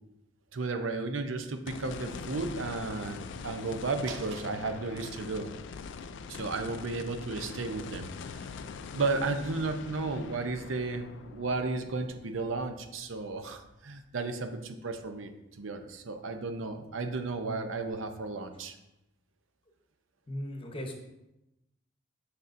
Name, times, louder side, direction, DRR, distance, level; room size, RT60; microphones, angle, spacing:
voice 1, 0.5-5.5 6.3-8.4 8.9-18.8, right 3 dB, 80° right, 7 dB, 0.6 m, -34 dB
sound 1, 1.7-14.0 14.4-14.5 17.9-18.0, left 5 dB, 65° left, 0.3 m, -43 dB
voice 2, 20.3-20.9, equal, 25° left, 2 dB, 0.9 m, -37 dB
7.0 x 6.6 x 2.6 m, 0.93 s
head